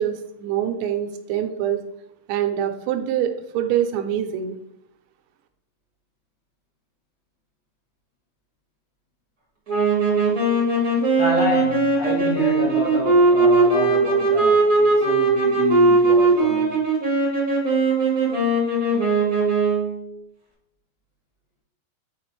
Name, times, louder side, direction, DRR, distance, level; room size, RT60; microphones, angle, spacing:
voice 1, 0.0-1.8 2.3-4.6, right 10 dB, 85° right, 3.0 m, -25 dB
sound 1, 9.7-20.0, right 3 dB, 40° right, 1.2 m, -19 dB
voice 2, 11.2-16.8, left 3 dB, 60° left, 2.4 m, -28 dB
6.6 x 4.9 x 3.1 m
omnidirectional pair, 5.1 m